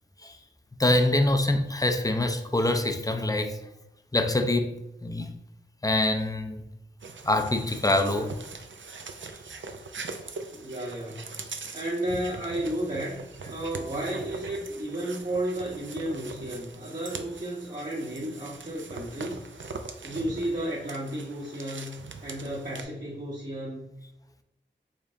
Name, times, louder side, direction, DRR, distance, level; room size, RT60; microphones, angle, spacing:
voice 1, 0.8-3.6 4.1-4.7 5.0-5.3 5.8-6.6 7.2-8.3, left 1 dB, 20° left, 6 dB, 0.6 m, -25 dB
sound 1, 7.0-22.8, right 4 dB, 75° right, 0.5 m, -42 dB
voice 2, 10.5-11.4 11.7-13.2 13.5-19.4 20.0-23.9, right 1 dB, 40° right, -6 dB, 0.9 m, -33 dB
5.2 x 3.3 x 2.6 m, 0.88 s
wide cardioid pair, 45°, 20 cm